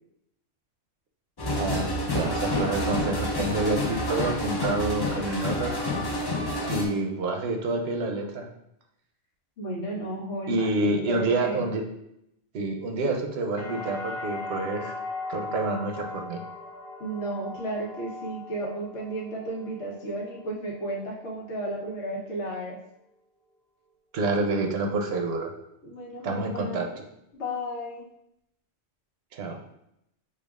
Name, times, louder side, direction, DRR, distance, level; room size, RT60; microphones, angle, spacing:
sound 1, 1.4-6.9, left 1 dB, 35° left, 0.4 m, -28 dB
voice 1, 1.5-5.8 6.7-8.5 10.5-11.8 12.5-14.9 15.3-16.4 24.1-25.5 26.2-26.9 29.3-29.6, right 3 dB, 70° right, 3 dB, 0.8 m, -28 dB
voice 2, 9.6-11.6 17.0-22.8 25.8-26.9 27.3-28.0, right 1 dB, 85° left, -3 dB, 1.3 m, -33 dB
sound 2, 13.6-21.5 21.8-22.5, left 2 dB, 70° left, 1.0 m, -39 dB
6.7 x 2.3 x 2.4 m, 0.79 s
omnidirectional pair, 1.1 m